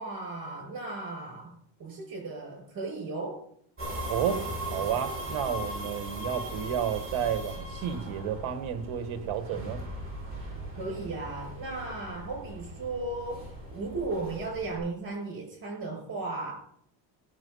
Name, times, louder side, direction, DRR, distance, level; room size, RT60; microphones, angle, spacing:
voice 1, 0.0-1.5 1.8-3.4 10.7-16.5, right 3 dB, 50° right, 3 dB, 6.6 m, -36 dB
sound 1, 3.8-14.8, equal, 25° right, 7.1 m, -39 dB
voice 2, 4.1-9.8, right 9 dB, 85° right, 9 dB, 1.6 m, -31 dB
16.0 x 7.4 x 5.5 m, 0.66 s
cardioid pair, 120°, 47 cm